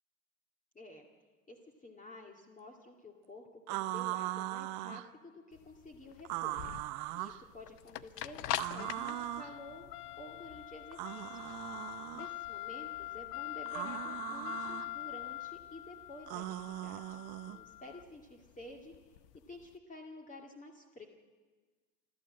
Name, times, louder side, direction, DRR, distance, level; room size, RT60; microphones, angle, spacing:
voice 1, 0.7-1.1 1.5-6.6 7.2-11.6 12.1-18.9 19.5-21.1, left 1 dB, 15° left, 1 dB, 2.2 m, -51 dB
sound 1, 3.7-5.1 6.2-7.4 8.5-9.5 10.9-12.3 13.7-14.9 16.3-17.6, right 16 dB, 50° right, 0.9 m, -39 dB
sound 2, 5.5-19.6, left 15 dB, 75° left, 0.9 m, -43 dB
28.5 x 12.0 x 7.7 m, 1.4 s
hypercardioid pair, 95°, 47 cm